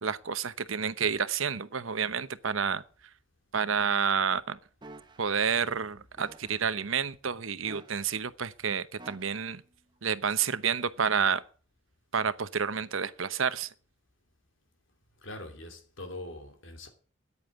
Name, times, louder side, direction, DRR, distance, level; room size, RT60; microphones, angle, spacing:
voice 1, 0.0-2.8 3.5-4.6 5.2-9.6 10.0-11.4 12.1-13.7, right 6 dB, 80° right, 0.9 m, -29 dB
sound 1, 4.8-5.3 6.2-6.7 7.6-8.3 9.0-9.6 10.3-10.5, right 2 dB, 20° right, 1.0 m, -50 dB
voice 2, 15.2-16.9, left 2 dB, 70° left, 2.7 m, -42 dB
9.7 x 8.9 x 9.3 m
head